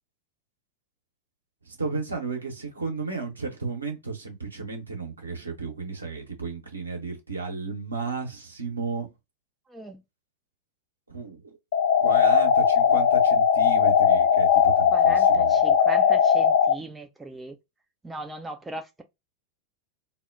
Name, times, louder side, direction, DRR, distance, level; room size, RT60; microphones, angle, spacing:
voice 1, 1.7-9.1 11.1-11.6 12.0-15.6, right 4 dB, 80° right, 0.9 m, -33 dB
voice 2, 9.7-10.0 14.9-17.5 18.0-19.0, right 2 dB, 10° right, 0.4 m, -38 dB
sound 1, 11.7-16.7, left 7 dB, 60° left, 0.3 m, -19 dB
2.1 x 2.0 x 3.6 m
figure-of-eight pair, 90°, 0 cm